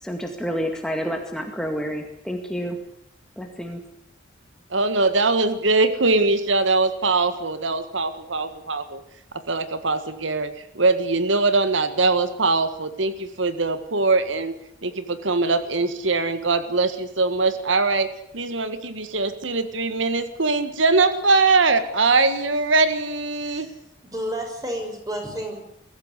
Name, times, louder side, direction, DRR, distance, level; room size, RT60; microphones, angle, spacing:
voice 1, 0.0-2.8 3.4-3.8, equal, 5° left, 3 dB, 2.1 m, -29 dB
voice 2, 4.7-9.0 9.5-10.5 10.8-14.5 14.8-18.1 18.3-23.7, right 3 dB, 90° right, 11 dB, 1.8 m, -22 dB
voice 3, 23.4-25.6, equal, 20° right, 2 dB, 6.2 m, -32 dB
22.5 x 14.5 x 9.9 m, 0.73 s
head